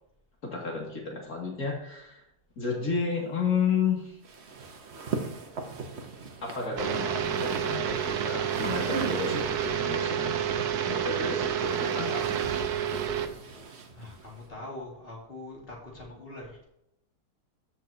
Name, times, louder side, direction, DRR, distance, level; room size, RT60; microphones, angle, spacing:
voice 1, 0.4-2.2 2.6-4.2 6.4-12.4, left 5 dB, 65° left, -2 dB, 2.8 m, -32 dB
sound 1, 4.2-9.9 10.9-14.5, right 4 dB, 45° right, 1.2 m, -40 dB
sound 2, 6.8-13.3, right 9 dB, 80° right, 1.3 m, -29 dB
voice 2, 13.9-16.6, left 2 dB, 35° left, -2 dB, 2.6 m, -43 dB
14.0 x 6.5 x 2.8 m, 0.81 s
omnidirectional pair, 1.7 m